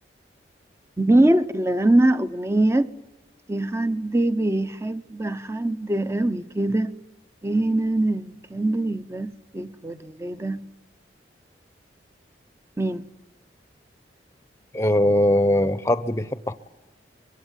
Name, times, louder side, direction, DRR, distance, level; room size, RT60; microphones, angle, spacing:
voice 1, 1.0-2.9 3.5-6.9 7.4-10.6 12.8-13.0, right 1 dB, 15° right, 0.8 m, -23 dB
voice 2, 14.7-16.5, left 1 dB, 15° left, 0.9 m, -21 dB
24.5 x 22.0 x 9.2 m
head